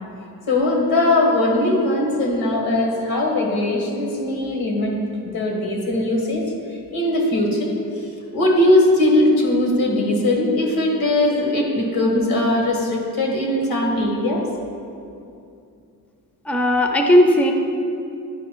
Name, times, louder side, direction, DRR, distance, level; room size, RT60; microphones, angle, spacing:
voice 1, 0.5-4.9 5.2-6.5 6.9-7.7 8.3-14.4, left 1 dB, 85° left, 0 dB, 1.6 m, -20 dB
voice 2, 16.5-17.5, equal, 5° left, 3 dB, 0.5 m, -16 dB
10.5 x 4.8 x 4.5 m, 2.5 s
wide cardioid pair, 150°, 35 cm